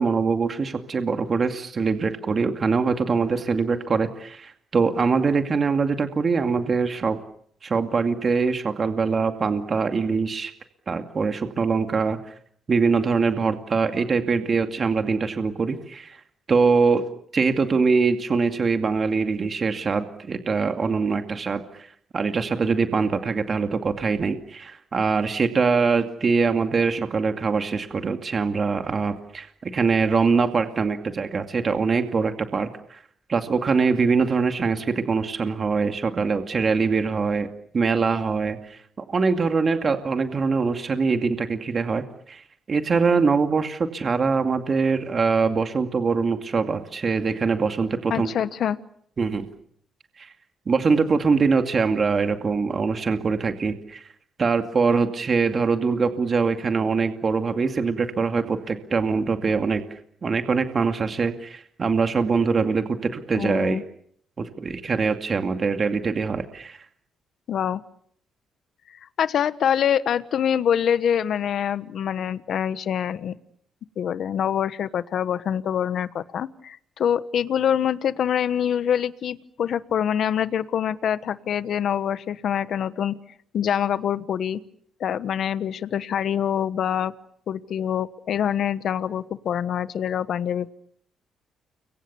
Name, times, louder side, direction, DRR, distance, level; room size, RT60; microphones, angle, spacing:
voice 1, 0.0-7.2 7.6-10.5 10.9-12.3 12.7-16.2 16.5-17.0 17.3-33.0 33.3-37.5 37.7-48.3 49.2-49.5 50.2-50.3 50.7-54.0 54.4-63.8 64.4-66.8, right 4 dB, 40° right, 6 dB, 2.4 m, -23 dB
voice 2, 48.1-48.8 63.3-63.8 67.5-67.8 68.9-73.3 74.0-83.1 83.5-84.6 85.0-87.1 87.5-90.7, left 9 dB, 65° left, 14 dB, 1.2 m, -25 dB
29.5 x 24.0 x 7.0 m, 0.66 s
cardioid pair, 90°, 0 cm